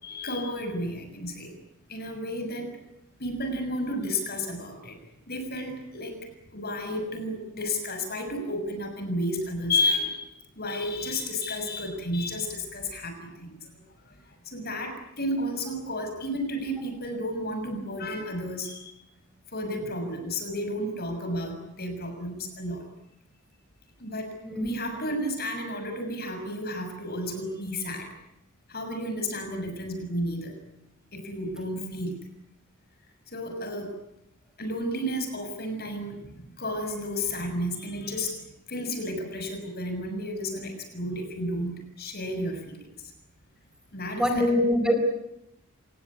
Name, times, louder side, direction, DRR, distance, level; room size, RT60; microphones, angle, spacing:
voice 1, 0.0-1.5 1.9-2.7 3.2-5.0 5.3-6.2 6.5-10.3 10.6-13.6 14.5-18.9 19.5-22.8 24.0-28.1 28.7-30.5 31.1-32.1 33.3-34.0 34.6-36.2 36.6-38.4 38.7-42.9 43.9-44.5, left 1 dB, 50° left, 6 dB, 6.5 m, -32 dB
voice 2, 44.2-45.0, left 1 dB, 5° right, 4 dB, 4.5 m, -23 dB
27.0 x 19.5 x 9.8 m, 0.83 s
head